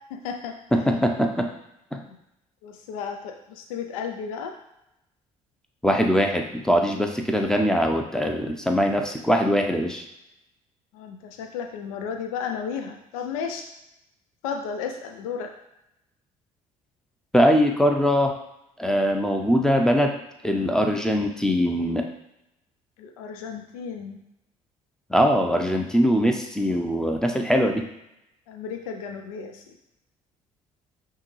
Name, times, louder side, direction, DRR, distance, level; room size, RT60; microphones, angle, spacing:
voice 1, 0.1-1.0 2.1-2.2 2.6-4.5 10.9-13.7 14.4-15.5 23.0-24.2 28.5-29.8, left 6 dB, 80° left, 5 dB, 0.4 m, -34 dB
voice 2, 0.7-1.5 1.9-2.0 5.8-10.0 17.3-18.3 18.8-20.1 20.4-22.0 25.1-27.8, equal, 5° left, 3 dB, 0.7 m, -22 dB
5.5 x 2.3 x 3.1 m, 0.86 s
hypercardioid pair, 55°, 18 cm